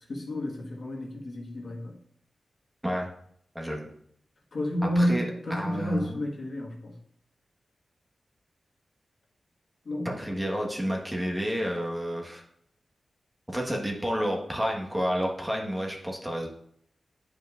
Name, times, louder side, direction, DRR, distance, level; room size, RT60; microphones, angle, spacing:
voice 1, 0.1-2.0 4.5-7.0 9.8-10.1, equal, 65° left, -2 dB, 1.6 m, -30 dB
voice 2, 3.5-3.9 4.9-5.2 5.5-6.2 10.0-12.4 13.5-16.5, equal, 10° right, 0 dB, 1.4 m, -30 dB
9.3 x 5.2 x 2.5 m, 0.69 s
cardioid pair, 55°, 0 cm